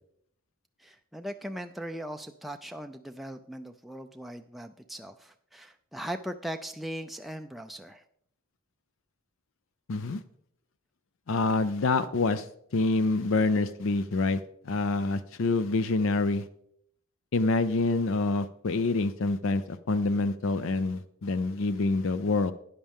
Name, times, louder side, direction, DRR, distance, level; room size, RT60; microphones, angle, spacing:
voice 1, 0.8-8.0, equal, ahead, 5 dB, 0.3 m, -39 dB
voice 2, 9.9-10.2 11.3-12.5 12.7-16.5 17.3-22.5, left 3 dB, 60° left, 13 dB, 0.5 m, -26 dB
12.5 x 9.7 x 3.6 m, 0.69 s
head